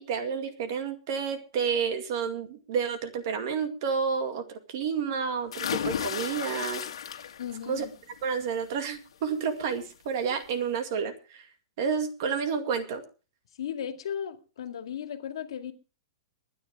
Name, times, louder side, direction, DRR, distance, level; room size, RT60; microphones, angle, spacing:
voice 1, 0.0-6.8 7.7-7.9 8.2-11.1 11.8-13.0, right 6 dB, 40° right, 2.1 m, -30 dB
sound 1, 5.5-7.6 8.0-8.4 9.8-9.9 10.3-10.4, left 9 dB, 90° left, 1.9 m, -33 dB
voice 2, 7.4-7.9 13.6-15.7, left 9 dB, 70° left, 2.1 m, -36 dB
22.5 x 10.0 x 3.6 m
supercardioid pair, 175°, 3 cm